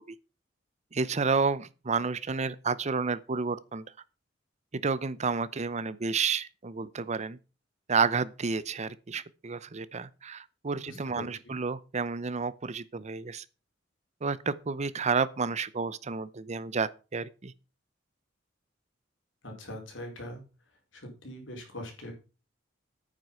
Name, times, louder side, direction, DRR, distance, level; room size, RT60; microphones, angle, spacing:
voice 1, 0.9-3.8 4.7-7.4 7.9-13.4 14.2-17.5, right 5 dB, 35° right, 0.7 m, -30 dB
voice 2, 10.9-11.5 19.4-20.4 20.9-22.1, left 1 dB, 80° left, 4.7 m, -42 dB
9.2 x 8.0 x 5.7 m
head